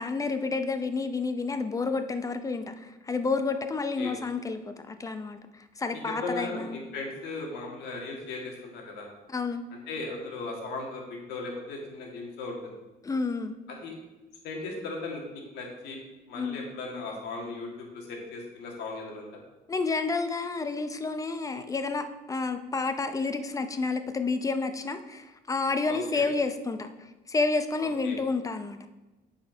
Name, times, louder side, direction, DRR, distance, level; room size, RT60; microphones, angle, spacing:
voice 1, 0.0-6.8 9.3-9.6 13.0-13.5 16.3-16.6 16.9-17.2 19.7-26.9 27.3-28.8, left 4 dB, 20° left, 8 dB, 0.6 m, -30 dB
voice 2, 5.9-9.1 9.9-12.7 13.8-14.0 14.4-16.0 16.3-19.3 25.9-26.2 27.8-28.2, left 3 dB, 80° left, 0 dB, 2.0 m, -37 dB
7.9 x 4.9 x 4.5 m, 1.1 s
cardioid pair, 110°, 17 cm